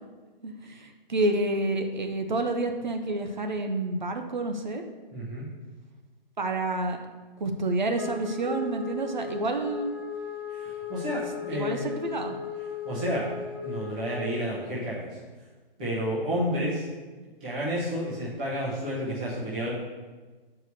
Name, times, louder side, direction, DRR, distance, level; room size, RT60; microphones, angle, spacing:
voice 1, 0.4-4.8 6.4-7.0 7.4-9.9 11.5-12.4, right 2 dB, 50° right, 5 dB, 0.8 m, -29 dB
voice 2, 5.1-5.5 10.5-11.9 12.8-13.3 13.6-15.1 15.8-16.9 17.4-19.7, equal, 10° right, -8 dB, 0.8 m, -30 dB
Wind instrument woodwind instrument, 8.0-14.4, left 7 dB, 25° left, 0.4 m, -37 dB
6.7 x 4.8 x 6.9 m, 1.3 s
hypercardioid pair, 180°, 29 cm